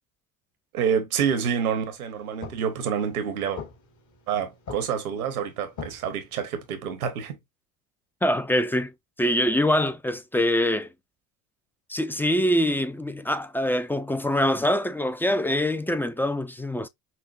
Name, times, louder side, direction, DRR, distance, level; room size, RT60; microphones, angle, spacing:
voice 1, 0.7-3.6 4.3-7.4, right 7 dB, 90° right, 1.1 m, -27 dB
sound 1, 1.5-6.7, left 5 dB, 45° left, 1.6 m, -44 dB
voice 2, 8.2-8.9 9.2-10.9 11.9-16.9, left 1 dB, 5° left, 0.4 m, -24 dB
5.8 x 2.1 x 2.4 m
hypercardioid pair, 70°, 42 cm